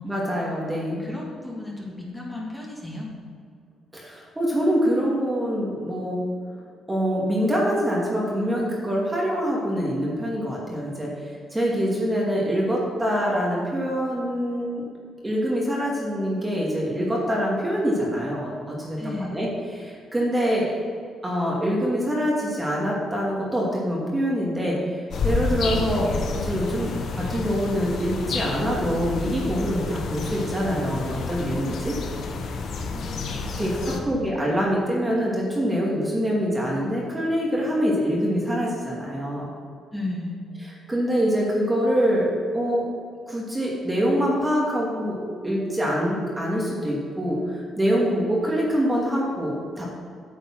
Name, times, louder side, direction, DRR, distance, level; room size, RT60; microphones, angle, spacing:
voice 1, 0.0-1.0 3.9-6.2 6.9-14.8 15.2-19.5 19.7-20.7 21.2-31.9 33.6-39.5 40.9-42.9 43.3-50.0, equal, 15° right, -4 dB, 2.4 m, -25 dB
voice 2, 0.9-3.1 19.0-19.5 32.8-33.6 33.9-34.2 39.9-40.4, left 2 dB, 10° left, -4 dB, 2.7 m, -35 dB
sound 1, 25.1-34.0, left 4 dB, 65° left, 1.3 m, -29 dB
9.4 x 7.6 x 6.0 m, 2.2 s
cardioid pair, 90°, 0 cm